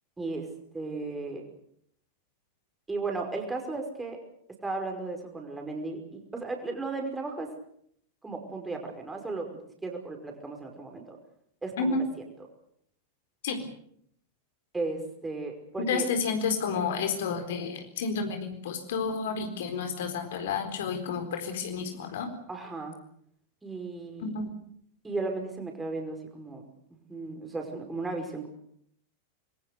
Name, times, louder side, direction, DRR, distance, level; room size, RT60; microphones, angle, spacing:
voice 1, 0.2-0.5 0.7-1.4 2.9-4.2 4.6-7.5 8.2-11.2 11.6-12.1 14.7-16.1 22.5-22.9 23.6-24.3 25.0-26.6 27.1-28.5, right 3 dB, 10° right, 2 dB, 5.3 m, -35 dB
voice 2, 15.8-22.3 24.2-24.5, left 5 dB, 55° left, 6 dB, 4.2 m, -30 dB
25.5 x 22.5 x 6.8 m, 0.69 s
figure-of-eight pair, 90°, 0 cm